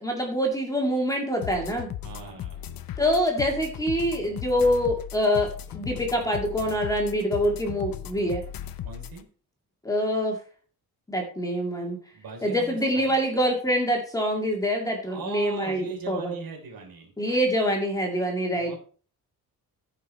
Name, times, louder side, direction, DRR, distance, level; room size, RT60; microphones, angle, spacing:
voice 1, 0.0-1.9 3.0-8.4 9.8-10.4 11.1-12.0 12.4-16.3 17.2-18.7, equal, 10° left, 1 dB, 2.1 m, -25 dB
sound 1, 1.4-9.2, left 10 dB, 65° left, 0.8 m, -37 dB
voice 2, 2.0-2.6 8.8-9.3 12.1-13.2 15.1-17.1 18.6-18.8, right 4 dB, 65° right, 1 dB, 3.6 m, -39 dB
14.5 x 5.6 x 4.2 m, 0.40 s
wide cardioid pair, 170°, 37 cm